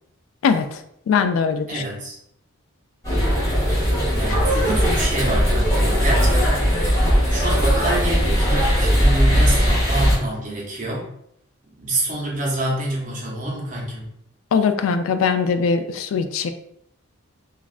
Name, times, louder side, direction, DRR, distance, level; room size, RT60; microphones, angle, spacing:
voice 1, 1.1-1.8 14.5-16.5, left 5 dB, 70° left, 8 dB, 0.3 m, -20 dB
voice 2, 1.7-2.2 4.2-7.0 7.3-11.1 11.8-14.1, right 1 dB, 35° right, -3 dB, 0.7 m, -27 dB
sound 1, 3.0-10.2, equal, 15° left, 1.4 m, -18 dB
3.1 x 2.4 x 2.4 m, 0.72 s
head